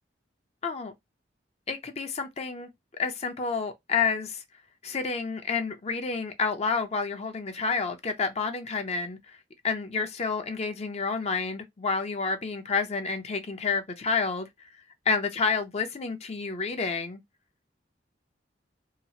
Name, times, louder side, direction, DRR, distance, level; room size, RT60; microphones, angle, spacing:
voice 1, 0.6-0.9 1.7-2.7 3.0-4.4 4.8-9.2 9.6-14.5 15.1-17.2, left 5 dB, 35° left, 0.5 m, -29 dB
2.9 x 2.4 x 2.7 m
head